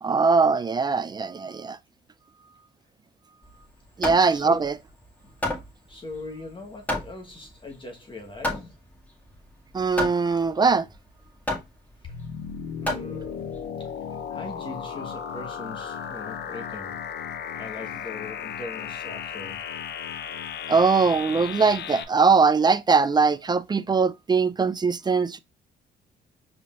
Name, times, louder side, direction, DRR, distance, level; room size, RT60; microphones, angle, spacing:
voice 1, 0.0-1.8 4.0-4.8 9.7-10.9 20.7-25.4, right 4 dB, 20° right, 0.4 m, -21 dB
Hammer, 3.4-13.6, left 1 dB, 10° left, 1.7 m, -33 dB
voice 2, 4.0-4.6 5.9-8.8 12.0-12.1 12.8-13.5 13.8-13.9 14.3-17.0 17.5-19.6, left 2 dB, 25° left, 1.2 m, -40 dB
sound 1, 12.0-22.0, left 7 dB, 55° left, 0.6 m, -35 dB
4.9 x 3.7 x 2.4 m
cardioid pair, 90°, 20 cm